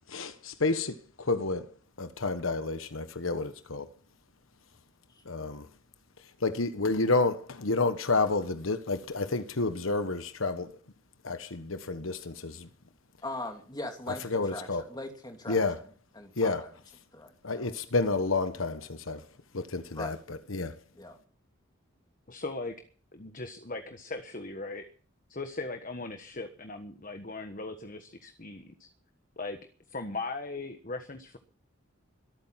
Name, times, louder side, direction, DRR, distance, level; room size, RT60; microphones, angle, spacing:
voice 1, 0.1-1.7 2.0-3.9 5.3-5.7 6.4-10.7 11.2-12.7 14.3-14.8 15.5-15.8 16.4-16.7 17.4-19.2 19.5-20.7, left 3 dB, 85° left, 1.2 m, -30 dB
voice 2, 13.2-15.6 16.1-16.7 17.1-17.7 19.9-20.2 20.9-21.2, left 2 dB, 20° left, 2.8 m, -40 dB
voice 3, 22.3-22.7 23.1-24.8 25.3-28.9 29.4-29.6 29.9-31.4, left 3 dB, 40° left, 1.4 m, -38 dB
23.5 x 9.1 x 5.8 m
head